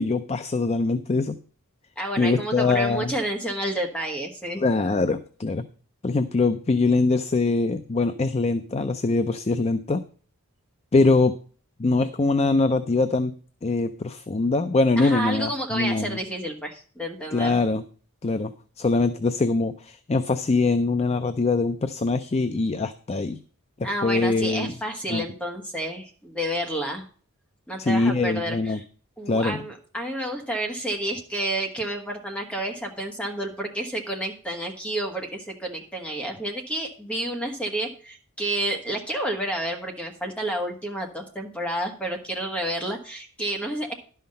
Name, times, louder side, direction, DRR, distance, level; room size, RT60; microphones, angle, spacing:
voice 1, 0.0-1.4 2.2-3.1 4.6-5.7 6.0-10.0 10.9-11.3 11.8-13.3 13.6-16.2 17.3-17.8 18.2-23.4 24.0-24.7 25.1-25.2 27.8-28.8 29.3-29.6, left 3 dB, 30° left, 10 dB, 0.4 m, -23 dB
voice 2, 2.0-4.6 15.0-17.6 23.8-27.0 27.7-28.8 29.2-43.9, right 1 dB, 5° left, 2 dB, 1.4 m, -30 dB
11.5 x 5.8 x 5.3 m, 0.42 s
head